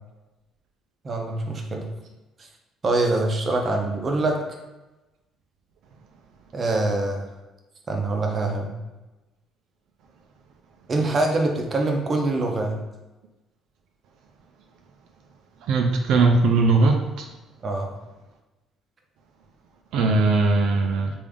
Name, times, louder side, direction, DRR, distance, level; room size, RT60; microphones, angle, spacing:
voice 1, 1.0-1.9 2.8-4.4 6.5-7.2 7.9-8.7 10.9-12.8 17.6-17.9, right 2 dB, 35° right, 2 dB, 0.6 m, -24 dB
voice 2, 15.7-17.3 19.9-21.1, right 3 dB, 75° right, 3 dB, 0.3 m, -19 dB
3.4 x 2.5 x 3.5 m, 1.1 s
cardioid pair, 130°, 0 cm